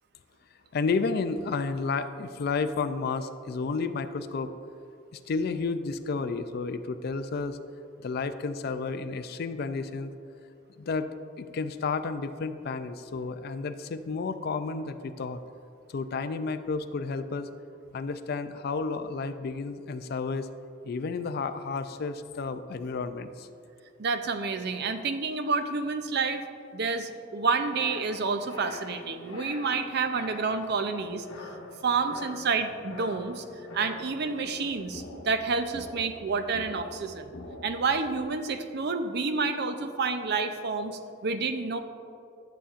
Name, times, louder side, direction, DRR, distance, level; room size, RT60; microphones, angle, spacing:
voice 1, 0.7-4.5 5.1-7.6 8.0-10.1 10.8-11.1 11.4-15.4 15.9-17.5 17.9-20.5 20.8-23.5, left 4 dB, 50° left, 10 dB, 0.4 m, -31 dB
voice 2, 24.0-26.4 26.7-31.3 31.8-33.4 33.7-37.3 37.6-41.8, right 4 dB, 55° right, 8 dB, 0.5 m, -29 dB
sound 1, 27.4-38.3, left 2 dB, 90° left, 1.1 m, -45 dB
11.5 x 6.9 x 2.5 m, 2.6 s
head